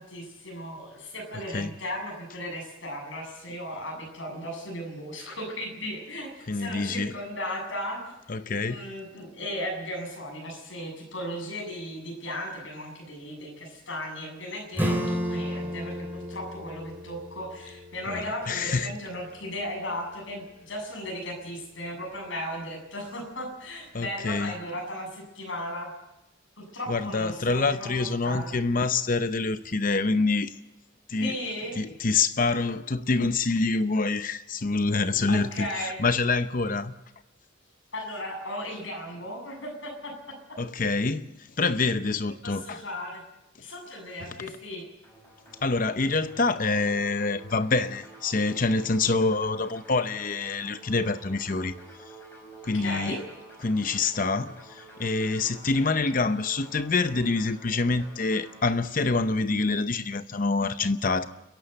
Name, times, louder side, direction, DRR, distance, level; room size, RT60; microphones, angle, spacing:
voice 1, 0.0-8.1 8.6-25.9 26.6-28.5 31.2-31.8 35.3-36.0 36.6-36.7 37.9-40.1 42.4-43.2 43.6-44.9 52.7-53.2, left 1 dB, 65° left, 7.7 m, -36 dB
voice 2, 6.5-7.1 8.3-8.9 18.1-18.9 23.9-24.5 26.9-30.5 31.1-31.4 31.8-36.9 40.6-41.3 41.6-42.8 45.6-51.7 52.6-53.2 53.6-61.3, left 3 dB, 40° left, 0.7 m, -26 dB
Acoustic guitar / Strum, 14.8-20.0, equal, 10° right, 2.9 m, -33 dB
sound 1, 45.0-58.7, right 1 dB, 10° left, 5.0 m, -49 dB
29.5 x 11.5 x 8.0 m
head